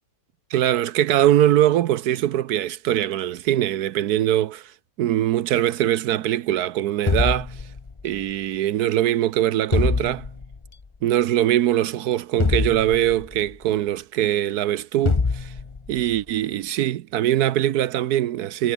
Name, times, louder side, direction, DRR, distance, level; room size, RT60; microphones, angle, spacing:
voice 1, 0.5-4.7 5.0-7.5 8.0-10.3 11.0-15.5 15.9-18.7, right 12 dB, 80° right, 1.2 m, -22 dB
sound 1, 7.1-8.2 9.7-10.7 12.4-13.5 15.1-16.0, left 4 dB, 25° left, 0.7 m, -24 dB
omnidirectional pair, 1.7 m